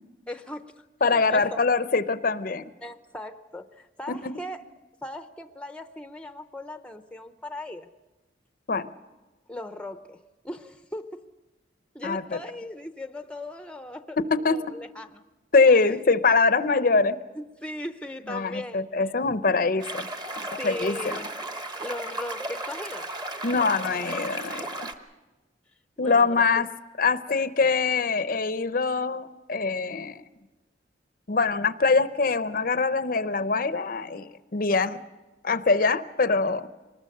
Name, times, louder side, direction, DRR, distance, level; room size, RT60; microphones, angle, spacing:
voice 1, 0.3-1.6 2.8-4.7 5.0-7.9 9.5-11.3 11.9-15.2 15.7-16.0 17.3-19.3 20.5-21.3 21.8-23.1 26.0-26.7 31.8-31.9, left 1 dB, 5° left, 0.6 m, -38 dB
voice 2, 1.0-2.6 4.1-4.2 8.7-8.9 12.0-12.2 14.3-14.6 15.5-17.2 18.3-20.1 20.5-21.2 23.4-24.7 26.0-26.7 27.0-30.2 31.3-35.0 35.4-36.7, left 4 dB, 45° left, 0.6 m, -23 dB
sound 1, 19.8-24.9, right 2 dB, 20° right, 1.1 m, -35 dB
24.5 x 19.5 x 6.6 m
head